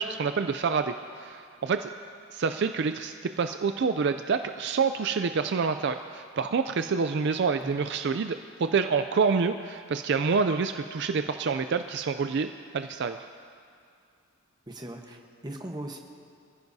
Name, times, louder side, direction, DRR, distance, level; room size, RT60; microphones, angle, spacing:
voice 1, 0.0-1.9 2.3-12.5 12.7-13.2, right 5 dB, 55° right, 8 dB, 0.4 m, -27 dB
voice 2, 14.7-16.0, right 1 dB, 20° right, 2 dB, 1.1 m, -39 dB
26.5 x 15.0 x 2.7 m, 2.3 s
head